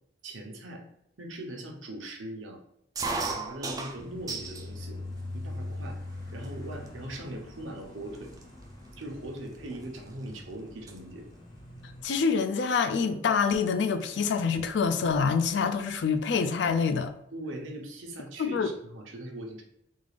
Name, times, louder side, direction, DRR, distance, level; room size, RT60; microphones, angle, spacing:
voice 1, 0.2-0.8 1.2-2.6 2.9-5.0 5.3-6.0 6.3-8.3 9.0-11.2 17.3-19.6, right 1 dB, 80° right, 0.9 m, -40 dB
sound 1, 3.0-4.7 5.1-5.8 6.4-6.5 6.8-7.2 7.8-7.9 8.1-10.4 10.7-11.0 12.3-12.6 13.7-13.8 14.0-14.1 14.4-15.2, right 3 dB, 20° right, 0.3 m, -36 dB
sound 2, 4.0-12.0, left 2 dB, 25° left, 0.7 m, -42 dB
voice 2, 12.0-17.1 18.4-18.7, left 5 dB, 60° left, 0.3 m, -26 dB
3.6 x 2.4 x 3.3 m
head